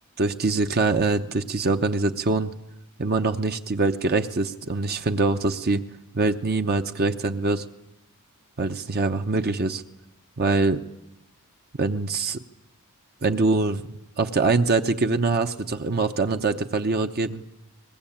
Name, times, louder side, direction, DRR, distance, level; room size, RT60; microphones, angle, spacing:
voice 1, 0.2-2.5 3.0-5.8 6.1-7.6 8.6-9.8 10.4-10.8 11.8-12.4 13.2-13.8 14.2-17.4, right 3 dB, 45° right, 7 dB, 0.8 m, -23 dB
23.5 x 20.5 x 8.7 m, 0.90 s
head